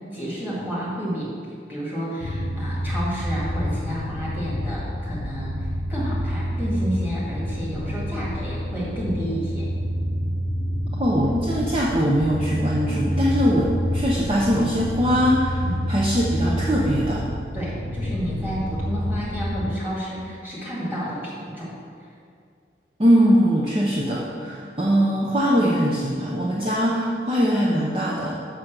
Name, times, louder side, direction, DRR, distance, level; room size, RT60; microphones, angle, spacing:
voice 1, 0.1-1.3 1.7-9.7 15.6-15.8 17.5-21.7 22.0-22.1, equal, 10° right, -7 dB, 2.1 m, -30 dB
sound 1, 2.2-19.7, equal, 60° left, 0.7 m, -28 dB
voice 2, 11.0-17.2 23.0-28.4, equal, 30° right, -5 dB, 0.8 m, -21 dB
6.4 x 6.3 x 6.0 m, 2.3 s
head